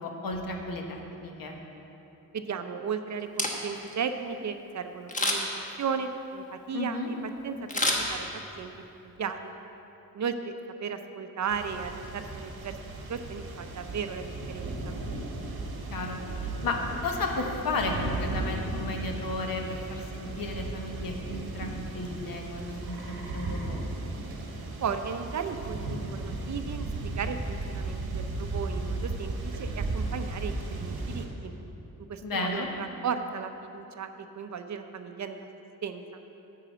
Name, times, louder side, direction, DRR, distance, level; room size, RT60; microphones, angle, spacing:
voice 1, 0.0-1.6 6.7-7.1 15.9-16.2 16.6-23.8 32.2-32.7, left 2 dB, 70° left, 2 dB, 1.2 m, -33 dB
voice 2, 2.3-5.5 5.8-7.0 7.4-8.3 8.6-9.5 10.1-12.8 13.1-15.0 24.8-31.5 32.1-35.5 35.8-36.2, right 6 dB, 50° right, 8 dB, 0.6 m, -35 dB
Camera, 3.2-3.9 5.1-5.6 7.7-8.6 9.0-9.1, left 1 dB, 20° left, 1.1 m, -29 dB
sound 1, 11.5-31.3, right 2 dB, 90° right, 1.3 m, -35 dB
9.9 x 4.8 x 7.8 m, 2.9 s
wide cardioid pair, 115°, 36 cm